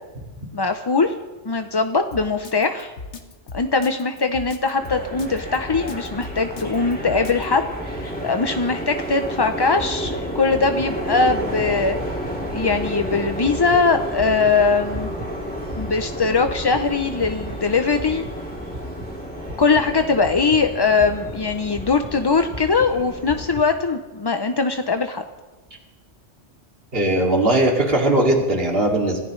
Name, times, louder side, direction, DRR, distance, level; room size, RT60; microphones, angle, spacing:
voice 1, 0.5-1.1 1.5-2.9 3.5-12.0 12.5-15.1 15.8-18.3 19.6-25.2, left 4 dB, 35° left, 7 dB, 0.4 m, -21 dB
Drum kit, 2.1-7.5, left 4 dB, 75° left, 1.6 m, -36 dB
sound 1, 4.8-23.7, equal, 5° left, 2.2 m, -31 dB
Human Heart, 9.7-23.7, equal, 30° right, 1.4 m, -38 dB
voice 2, 26.9-29.2, right 1 dB, 55° right, 0 dB, 2.8 m, -19 dB
26.0 x 14.0 x 3.2 m, 1.2 s
omnidirectional pair, 1.2 m